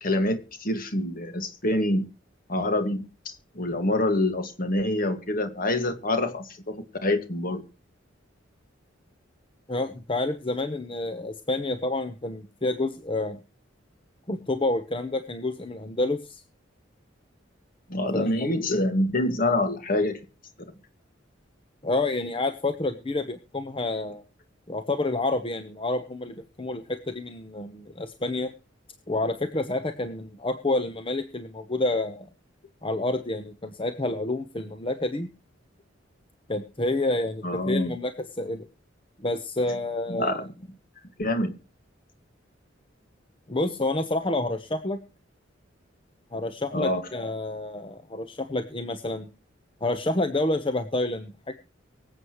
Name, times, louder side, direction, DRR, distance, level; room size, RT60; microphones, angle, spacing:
voice 1, 0.0-2.0 2.5-7.6 17.9-20.2 37.4-38.0 40.1-40.5 41.2-41.5 46.7-47.0, left 1 dB, 50° left, 2.0 m, -26 dB
voice 2, 9.7-13.4 14.3-16.4 18.1-18.5 21.8-24.2 24.7-28.5 29.1-32.3 32.8-35.3 36.5-38.7 39.2-40.5 43.5-45.0 46.3-49.3 49.8-51.5, left 2 dB, 30° left, 1.0 m, -29 dB
24.0 x 8.1 x 3.1 m
head